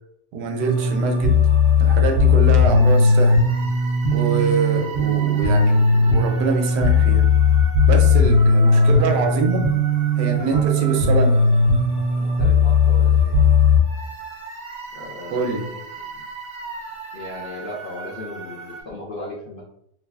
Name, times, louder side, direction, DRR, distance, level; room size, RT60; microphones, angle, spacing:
voice 1, 0.3-1.4 1.8-3.4 4.1-7.3 7.9-9.7 10.2-11.3 15.3-15.7, right 3 dB, 85° right, 4 dB, 1.2 m, -24 dB
sound 1, 0.6-18.8, left 3 dB, 45° right, 0.7 m, -18 dB
voice 2, 8.5-9.2 10.5-11.0 12.2-13.5 14.9-16.3 17.1-19.6, left 1 dB, 50° left, -6 dB, 0.6 m, -37 dB
3.8 x 2.8 x 2.3 m, 0.72 s
omnidirectional pair, 1.8 m